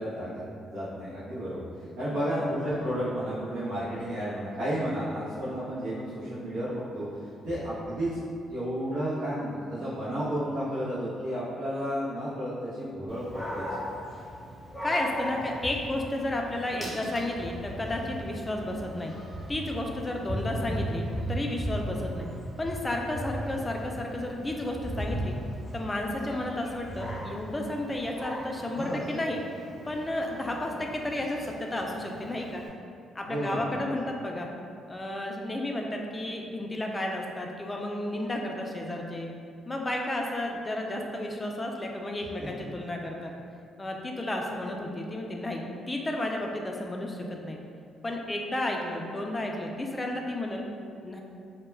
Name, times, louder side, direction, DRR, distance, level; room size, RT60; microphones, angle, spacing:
voice 1, 0.0-7.1 7.4-8.2 8.5-13.6 28.7-29.3 33.2-34.0, equal, 85° right, -13 dB, 0.7 m, -32 dB
Dog, 13.1-32.7, equal, 5° right, 0.7 m, -37 dB
voice 2, 14.8-19.2 19.5-22.3 22.6-25.3 25.7-29.4 29.9-32.6 33.1-34.5 34.9-39.3 39.7-43.3 43.8-47.6 48.0-50.6 51.0-51.2, left 1 dB, 20° left, 1 dB, 0.3 m, -32 dB
2.1 x 2.1 x 3.2 m, 2.4 s
cardioid pair, 90°, 0 cm